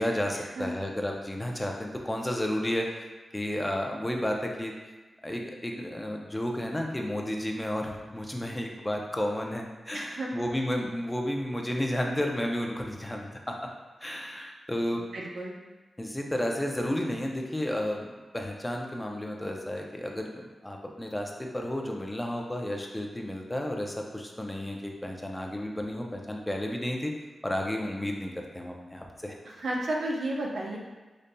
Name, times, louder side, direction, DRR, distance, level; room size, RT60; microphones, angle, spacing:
voice 1, 0.0-3.0 3.3-4.7 5.2-13.5 14.0-15.0 16.0-27.1 27.4-29.4, left 1 dB, 15° left, 1 dB, 0.5 m, -32 dB
voice 2, 9.9-10.3 14.9-15.6 29.4-30.8, right 1 dB, 80° right, -2 dB, 0.7 m, -33 dB
5.1 x 2.6 x 2.2 m, 1.3 s
cardioid pair, 65°, 0 cm